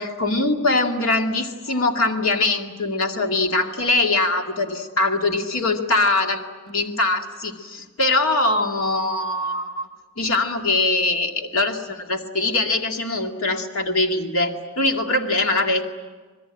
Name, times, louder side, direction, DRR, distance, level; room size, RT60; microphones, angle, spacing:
voice 1, 0.0-6.4 6.7-9.9 10.2-15.8, left 2 dB, 75° left, 3 dB, 2.2 m, -22 dB
26.5 x 21.0 x 8.9 m, 1.4 s
head